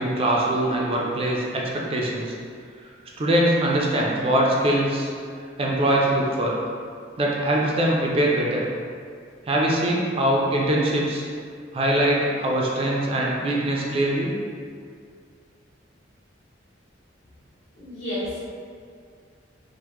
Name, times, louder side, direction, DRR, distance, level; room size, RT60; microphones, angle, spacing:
voice 1, 0.0-2.4 3.2-5.1 5.6-6.5 7.2-8.6 9.4-11.2 11.7-14.3, right 1 dB, 30° right, -3 dB, 0.3 m, -22 dB
voice 2, 17.7-18.5, left 1 dB, 70° left, -10 dB, 1.3 m, -31 dB
3.3 x 2.0 x 3.0 m, 2.2 s
head